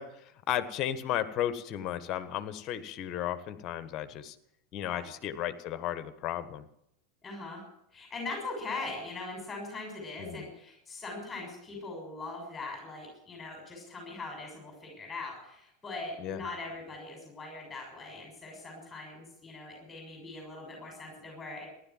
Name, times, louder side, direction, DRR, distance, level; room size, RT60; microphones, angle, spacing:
voice 1, 0.0-4.3 4.7-6.7 10.2-10.5 16.2-16.4, left 11 dB, 45° left, 12 dB, 1.5 m, -34 dB
voice 2, 7.2-7.6 7.9-21.7, left 3 dB, 15° left, 1 dB, 6.5 m, -41 dB
16.0 x 11.5 x 7.5 m, 0.77 s
figure-of-eight pair, 85°, 0 cm